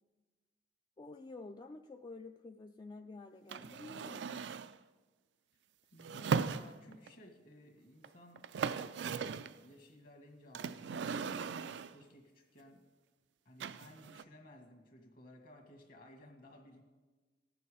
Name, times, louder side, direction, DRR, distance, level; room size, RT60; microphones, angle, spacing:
voice 1, 1.0-4.5, left 3 dB, 25° left, 5 dB, 0.3 m, -50 dB
sound 1, 3.5-4.8 6.0-7.1 8.0-8.1 8.4-9.6 10.5-12.0 13.6-14.2, right 5 dB, 80° right, 0.4 m, -38 dB
voice 2, 5.9-8.5 9.0-11.2 11.6-12.9 13.4-16.8, left 1 dB, 55° left, 3 dB, 1.7 m, -58 dB
18.0 x 7.0 x 4.9 m, 1.3 s
head